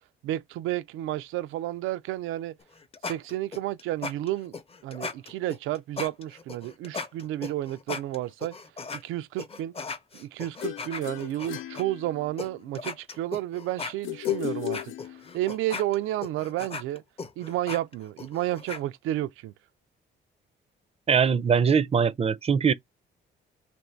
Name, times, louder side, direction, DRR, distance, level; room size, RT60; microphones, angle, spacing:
voice 1, 0.2-2.6 3.0-4.5 4.8-8.6 8.9-9.7 10.1-17.0 17.4-19.5, right 14 dB, 90° right, 0.4 m, -31 dB
sound 1, 2.6-9.0 9.4-11.8 12.4-12.5 12.7-18.8, left 4 dB, 30° left, 0.7 m, -37 dB
sound 2, 10.6-12.6 14.0-15.6, left 17 dB, 90° left, 0.5 m, -34 dB
voice 2, 21.1-22.7, right 6 dB, 30° right, 0.4 m, -22 dB
3.0 x 2.6 x 4.4 m
cardioid pair, 90°, 20 cm